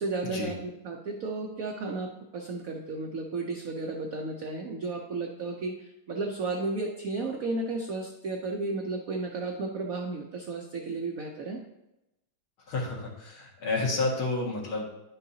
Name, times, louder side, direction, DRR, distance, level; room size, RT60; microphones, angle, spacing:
voice 1, 0.0-11.6, right 3 dB, 75° right, 2 dB, 0.8 m, -33 dB
voice 2, 12.7-14.9, left 3 dB, 75° left, -3 dB, 2.6 m, -30 dB
10.5 x 5.6 x 2.7 m, 0.92 s
omnidirectional pair, 2.3 m